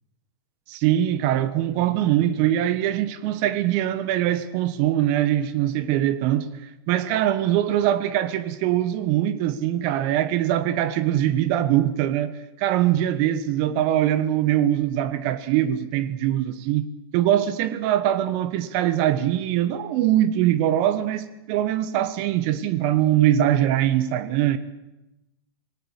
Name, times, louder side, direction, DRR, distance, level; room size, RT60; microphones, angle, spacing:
voice 1, 0.7-16.8 17.1-24.6, right 12 dB, 45° right, 1.2 m, -22 dB
20.0 x 18.0 x 8.2 m
figure-of-eight pair, 105°, 14 cm